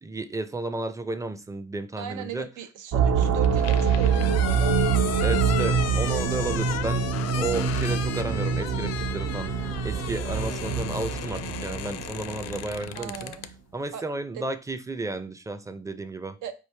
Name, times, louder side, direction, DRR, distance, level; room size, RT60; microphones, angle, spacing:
voice 1, 0.0-2.5 5.2-7.1 7.3-13.3 13.7-16.4, right 2 dB, 10° right, 0.4 m, -33 dB
voice 2, 2.0-4.8 12.9-13.5 13.9-14.1 14.3-14.4 16.4-16.5, right 10 dB, 90° right, 0.7 m, -37 dB
sound 1, 2.9-12.8, right 6 dB, 55° right, 0.6 m, -25 dB
sound 2, 3.2-13.5, left 10 dB, 60° left, 0.4 m, -35 dB
4.3 x 3.2 x 3.2 m
cardioid pair, 90°, 30 cm